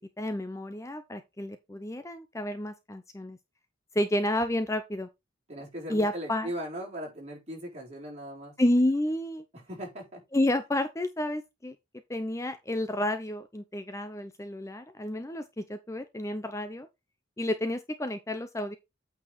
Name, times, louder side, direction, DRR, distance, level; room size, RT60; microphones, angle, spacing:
voice 1, 0.2-3.4 3.9-5.1 5.9-6.5 8.6-9.4 10.3-11.8 12.1-16.9 17.4-18.8, left 1 dB, 15° left, 0.6 m, -30 dB
voice 2, 5.5-8.5 9.5-10.2, equal, 35° right, 4.3 m, -39 dB
8.7 x 4.8 x 4.1 m
head